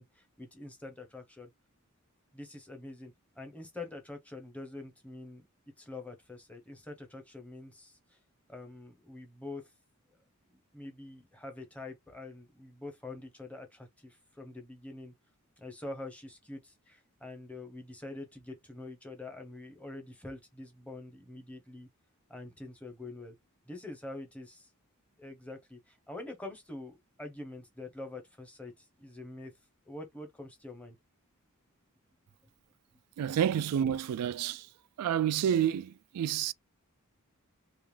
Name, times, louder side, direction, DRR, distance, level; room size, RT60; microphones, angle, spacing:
voice 1, 0.0-1.5 2.3-5.4 5.8-8.2 8.5-9.6 10.5-15.1 15.6-21.9 22.3-23.3 23.7-24.7 25.2-29.5 29.9-30.9, left 2 dB, 5° left, 0.9 m, -45 dB
voice 2, 33.2-34.7 35.0-36.5, right 9 dB, 90° right, 0.3 m, -29 dB
3.5 x 2.9 x 3.2 m
head